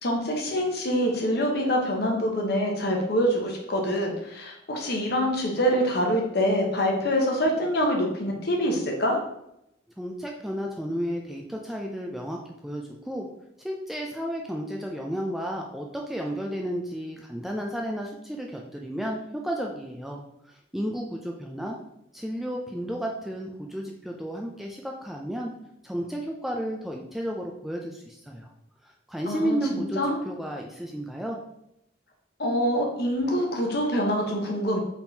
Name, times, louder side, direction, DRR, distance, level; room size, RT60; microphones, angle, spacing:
voice 1, 0.0-9.2 29.3-30.1 32.4-34.8, equal, 60° left, 1 dB, 0.9 m, -25 dB
voice 2, 10.0-13.3 13.6-20.2 20.7-21.8 22.1-25.5 25.8-28.5 29.1-31.4, equal, ahead, 0 dB, 0.3 m, -32 dB
4.4 x 3.5 x 2.7 m, 0.81 s
head